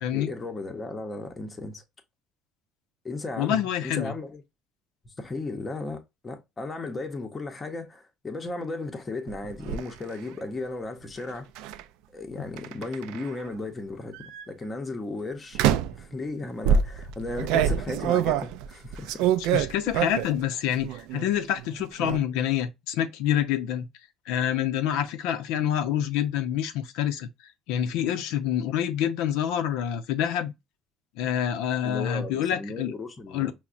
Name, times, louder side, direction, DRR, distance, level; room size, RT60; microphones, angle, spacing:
voice 1, 0.1-1.8 3.0-4.4 5.0-11.5 12.1-14.2 14.5-15.6 15.9-19.3 31.8-33.5, left 2 dB, 15° left, 0.6 m, -35 dB
voice 2, 3.4-4.1 19.4-23.9 24.3-27.3 27.7-30.5 31.2-32.9 33.3-33.5, left 10 dB, 80° left, 0.6 m, -27 dB
sound 1, 9.3-9.8 11.6-11.8 12.6-13.4 14.1-14.4 15.5-16.0 16.6-20.4 20.8-21.3 21.6-22.2, right 8 dB, 80° right, 0.3 m, -26 dB
5.7 x 2.1 x 2.5 m
cardioid pair, 160°, 0 cm